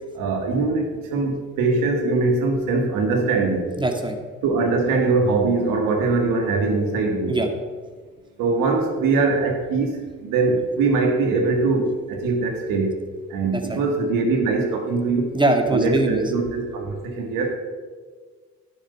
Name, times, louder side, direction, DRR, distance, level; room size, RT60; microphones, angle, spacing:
voice 1, 0.1-3.7 4.4-7.4 8.4-12.9 13.3-15.3 15.7-17.6, right 3 dB, 80° right, 3 dB, 1.9 m, -22 dB
voice 2, 3.8-4.2 7.3-7.5 13.5-13.8 15.3-16.2, right 2 dB, 15° right, 4 dB, 2.0 m, -22 dB
10.0 x 8.0 x 5.6 m, 1.5 s
supercardioid pair, 55°, 33 cm